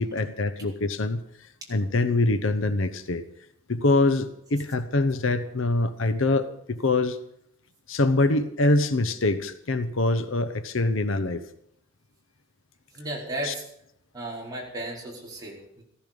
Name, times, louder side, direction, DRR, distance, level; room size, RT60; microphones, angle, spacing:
voice 1, 0.0-3.2 3.7-7.2 7.9-11.4 13.4-13.5, left 2 dB, 70° left, 11 dB, 0.9 m, -24 dB
voice 2, 12.9-13.6 14.1-15.8, right 1 dB, 20° right, -4 dB, 4.4 m, -34 dB
15.0 x 14.5 x 5.3 m, 0.73 s
head